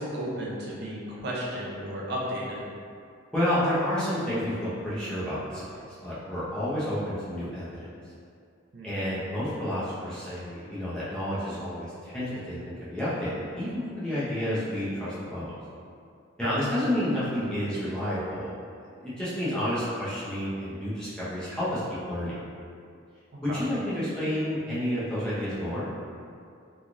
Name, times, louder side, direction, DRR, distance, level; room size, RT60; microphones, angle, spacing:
voice 1, 0.0-2.6 8.7-8.9 16.4-16.6 23.5-23.6, equal, 55° right, -5 dB, 0.6 m, -33 dB
voice 2, 3.3-7.9 8.8-15.6 16.4-18.6 19.0-21.8 22.1-22.5 23.4-26.0, equal, 5° left, -12 dB, 0.7 m, -30 dB
3.0 x 2.4 x 2.5 m, 2.4 s
head